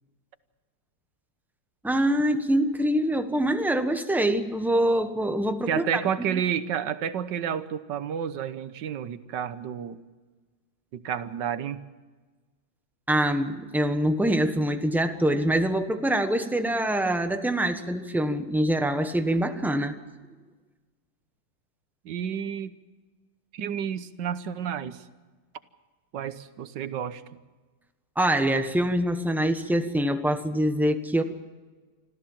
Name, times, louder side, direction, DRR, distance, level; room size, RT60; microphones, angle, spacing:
voice 1, 1.8-6.0 13.1-19.9 28.2-31.2, right 1 dB, ahead, 7 dB, 0.9 m, -24 dB
voice 2, 5.7-10.0 10.9-11.8 22.0-22.8 23.5-25.1 26.1-27.4, right 8 dB, 70° right, 13 dB, 1.6 m, -30 dB
26.0 x 14.5 x 7.3 m, 1.3 s
omnidirectional pair, 2.0 m